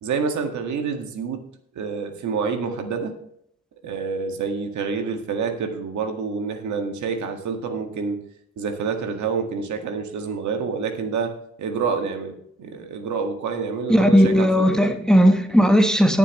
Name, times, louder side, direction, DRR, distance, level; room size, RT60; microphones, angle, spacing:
voice 1, 0.0-1.4 1.8-3.2 3.8-8.2 8.6-12.3 12.6-14.7, right 5 dB, 70° right, 5 dB, 1.8 m, -27 dB
voice 2, 13.9-16.2, equal, ahead, 6 dB, 1.1 m, -16 dB
18.5 x 7.1 x 3.1 m, 0.71 s
cardioid pair, 90°, 30 cm